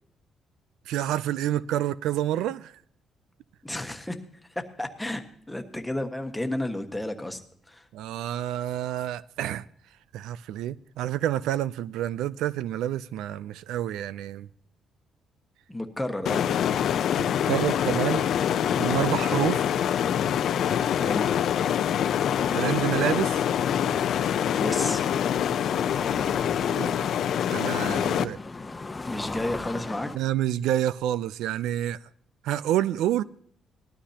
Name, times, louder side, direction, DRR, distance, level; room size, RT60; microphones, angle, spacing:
voice 1, 0.9-2.8 7.9-9.6 10.1-14.5 17.2-18.3 18.8-19.6 22.5-23.5 26.8-27.0 27.5-28.4 30.1-32.0 32.4-33.2, right 12 dB, 90° right, 0.4 m, -28 dB
voice 2, 3.6-4.2 4.5-7.4 7.7-7.9 15.7-16.5 21.0-21.4 24.6-25.0 29.0-30.1, left 1 dB, 5° left, 1.4 m, -32 dB
sound 1, 16.3-28.2, left 9 dB, 70° left, 0.6 m, -25 dB
sound 2, 23.5-30.2, left 3 dB, 25° left, 0.9 m, -39 dB
19.0 x 12.5 x 2.9 m
cardioid pair, 90°, 0 cm